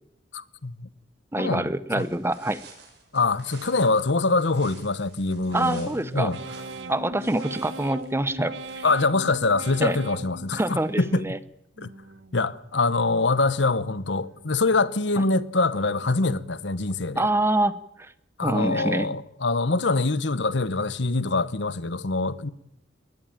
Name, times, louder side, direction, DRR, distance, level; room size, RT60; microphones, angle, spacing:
voice 1, 0.3-0.9 1.4-2.1 3.1-6.4 8.8-11.2 11.8-11.9 12.3-17.3 18.4-22.5, left 3 dB, 70° left, 1.1 m, -24 dB
voice 2, 1.3-2.6 5.5-6.3 6.9-8.8 9.8-10.0 10.5-11.4 15.2-15.3 17.2-17.7 18.0-18.1 18.4-19.1, right 1 dB, 15° right, 0.8 m, -25 dB
sound 1, 2.0-9.1, right 5 dB, 60° right, 6.9 m, -51 dB
sound 2, 5.5-11.3 11.8-12.4 12.8-13.5 13.9-14.6 15.0-15.6 16.1-16.7, right 2 dB, 85° right, 1.8 m, -41 dB
20.5 x 20.5 x 9.1 m
head